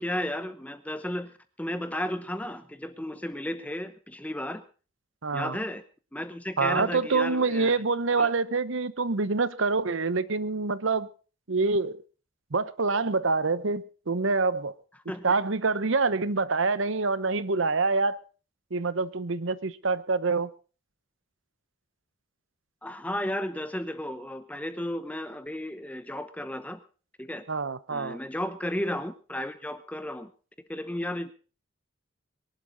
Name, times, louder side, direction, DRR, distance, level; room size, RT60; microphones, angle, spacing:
voice 1, 0.0-4.6 5.3-5.8 6.1-7.8 8.2-8.3 15.1-15.2 22.8-26.8 27.2-27.5 27.9-30.3 30.7-31.3, left 1 dB, 5° left, 11 dB, 0.8 m, -34 dB
voice 2, 5.2-5.6 6.6-11.1 11.5-12.0 12.5-14.7 15.2-18.2 18.7-20.5 27.5-28.2, right 4 dB, 75° right, 16 dB, 0.9 m, -26 dB
22.5 x 11.5 x 3.9 m, 0.36 s
head